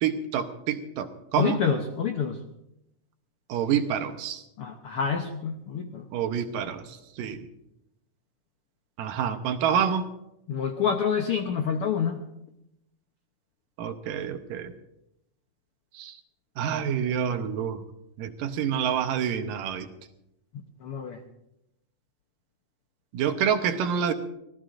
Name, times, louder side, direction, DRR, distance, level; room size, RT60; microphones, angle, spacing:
voice 1, 0.0-1.6 3.5-4.4 6.1-7.5 9.0-10.1 13.8-14.7 15.9-16.2 16.6-17.8 18.2-19.9 23.1-24.1, right 8 dB, 85° right, 8 dB, 2.6 m, -27 dB
voice 2, 1.4-2.4 4.6-6.0 10.5-12.2 20.8-21.2, left 6 dB, 80° left, 4 dB, 1.3 m, -27 dB
25.0 x 17.0 x 2.6 m, 0.86 s
omnidirectional pair, 3.8 m